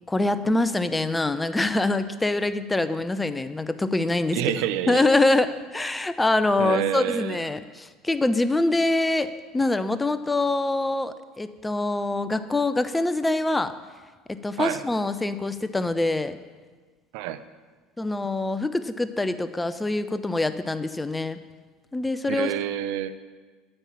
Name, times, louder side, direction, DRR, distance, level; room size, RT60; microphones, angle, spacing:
voice 1, 0.1-4.4 4.9-13.7 14.3-16.4 18.0-21.4 21.9-22.5, left 2 dB, 15° left, 12 dB, 0.7 m, -24 dB
voice 2, 4.3-5.1 6.6-7.4 14.6-14.8 17.1-17.4 22.3-23.1, right 12 dB, 65° right, 12 dB, 0.6 m, -28 dB
9.7 x 7.3 x 7.4 m, 1.4 s
hypercardioid pair, 70°, 0 cm